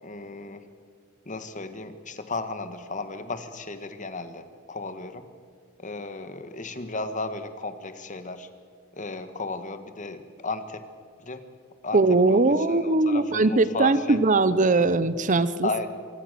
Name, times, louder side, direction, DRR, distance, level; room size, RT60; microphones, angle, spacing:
voice 1, 0.0-0.6 1.2-5.2 5.8-8.5 9.0-10.8 11.2-11.4 11.8-12.0 12.3-12.4 12.7-14.2 15.6-15.9, left 3 dB, 35° left, 10 dB, 1.7 m, -34 dB
voice 2, 11.9-15.7, right 3 dB, 35° right, 15 dB, 0.7 m, -20 dB
25.5 x 23.5 x 6.9 m, 2.1 s
head